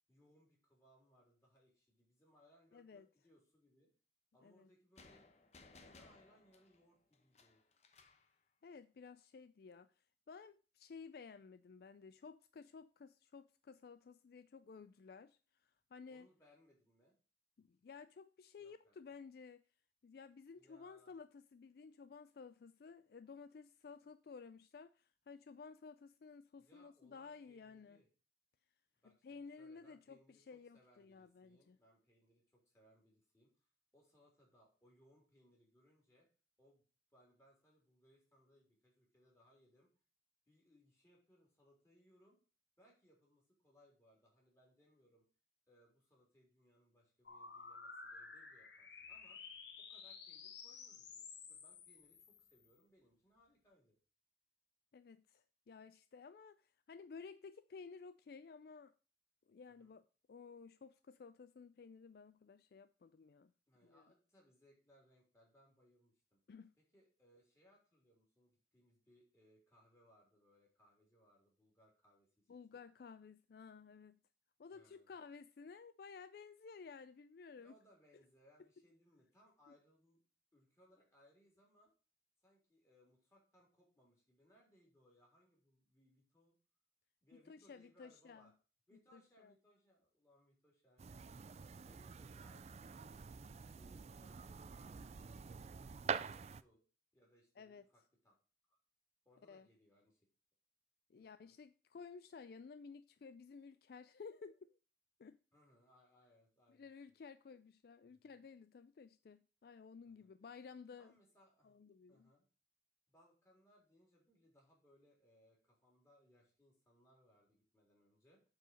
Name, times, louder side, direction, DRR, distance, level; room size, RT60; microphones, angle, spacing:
voice 1, 0.1-3.9 4.3-5.3 5.7-7.6 16.1-17.2 18.6-19.0 20.5-21.1 26.6-28.1 29.0-33.5 33.9-36.3 36.6-36.8 37.1-39.9 40.5-42.4 42.8-45.2 45.7-54.0 59.8-60.0 63.7-66.4 66.9-72.5 74.7-75.1 77.5-80.2 80.5-81.9 82.4-86.6 87.2-88.5 88.9-91.3 91.7-93.2 93.5-96.8 97.1-98.4 98.7-98.8 99.3-100.2 101.4-101.6 105.5-106.9 108.1-108.3 110.0-110.3 111.0-111.8 112.1-112.5 113.1-118.4, equal, 15° left, 3.6 m, -70 dB
voice 2, 2.7-3.1 4.4-4.7 8.6-16.3 17.6-19.6 20.0-28.0 29.0-31.8 54.9-58.9 59.5-63.5 63.8-64.0 66.5-66.7 72.5-74.2 74.6-77.7 78.6-78.7 79.7-79.8 87.3-88.5 88.9-89.5 97.6-97.8 99.5-99.7 101.1-104.8 105.2-105.4 106.7-111.1 111.6-112.3, left 5 dB, 60° left, 0.4 m, -55 dB
sound 1, 5.0-8.3, left 3 dB, 40° left, 1.0 m, -63 dB
sound 2, 47.2-52.7, left 5 dB, 80° left, 1.3 m, -53 dB
sound 3, 91.0-96.6, right 6 dB, 35° right, 0.3 m, -46 dB
7.8 x 4.7 x 6.4 m
head